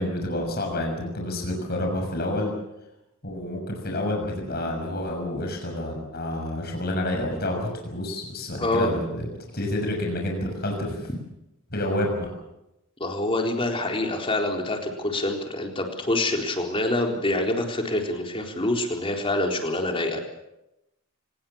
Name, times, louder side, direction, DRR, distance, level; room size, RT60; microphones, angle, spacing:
voice 1, 0.0-2.5 3.2-9.3 9.5-11.1 11.7-12.3, left 1 dB, 50° left, 1 dB, 6.4 m, -29 dB
voice 2, 8.6-8.9 13.0-20.2, left 1 dB, 25° left, 2 dB, 4.1 m, -26 dB
25.5 x 20.5 x 7.3 m, 0.90 s
head